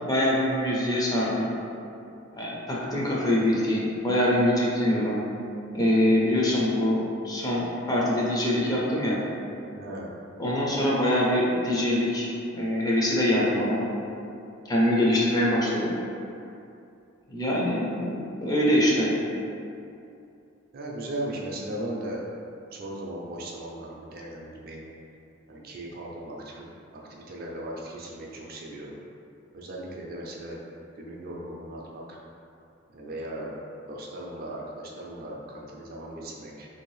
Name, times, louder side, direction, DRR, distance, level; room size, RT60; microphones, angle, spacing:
voice 1, 0.0-1.5 2.3-5.2 5.7-9.2 10.4-13.8 14.7-15.9 17.3-19.1, left 1 dB, 20° left, -5 dB, 0.4 m, -24 dB
voice 2, 9.8-10.1 20.7-22.2 22.7-24.8 25.5-26.6 26.9-29.0 29.5-30.6 31.0-32.2 32.9-33.5 33.9-36.7, right 1 dB, 45° right, -2 dB, 0.4 m, -37 dB
3.2 x 2.6 x 3.1 m, 2.7 s
head